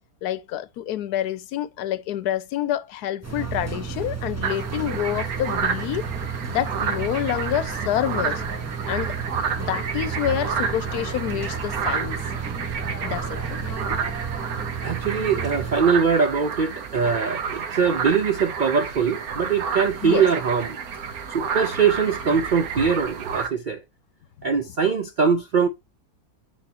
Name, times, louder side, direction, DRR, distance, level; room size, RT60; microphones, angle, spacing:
voice 1, 0.2-6.1 6.5-8.4 8.9-9.1 9.6-12.2 13.0-13.8 20.0-20.3 22.3-22.4, left 12 dB, 80° left, 1.2 m, -28 dB
sound 1, 3.2-15.8, right 6 dB, 10° right, 0.9 m, -32 dB
sound 2, 4.4-23.5, right 6 dB, 70° right, 1.4 m, -30 dB
voice 2, 14.8-20.8 21.3-23.8 24.4-25.7, right 6 dB, 90° right, 0.4 m, -22 dB
8.4 x 4.1 x 2.8 m
omnidirectional pair, 1.7 m